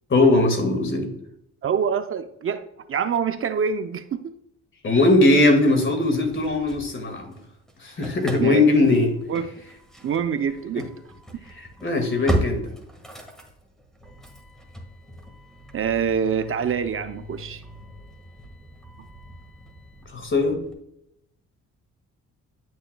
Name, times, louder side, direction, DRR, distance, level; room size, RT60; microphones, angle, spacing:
voice 1, 0.1-1.1 4.8-7.3 7.8-9.1 10.8-10.9 11.5-12.7 20.1-20.6, left 2 dB, 40° left, 5 dB, 2.0 m, -20 dB
voice 2, 1.6-2.6 2.9-4.3 8.4-8.6 9.3-9.5 10.0-10.9 11.3-11.4 15.7-17.6 19.0-19.1, right 7 dB, 45° right, 9 dB, 0.5 m, -25 dB
Engine starting / Slam, 6.0-7.4 7.7-20.7, right 1 dB, ahead, 1.6 m, -36 dB
10.0 x 6.4 x 2.2 m, 0.76 s
cardioid pair, 90°, 30 cm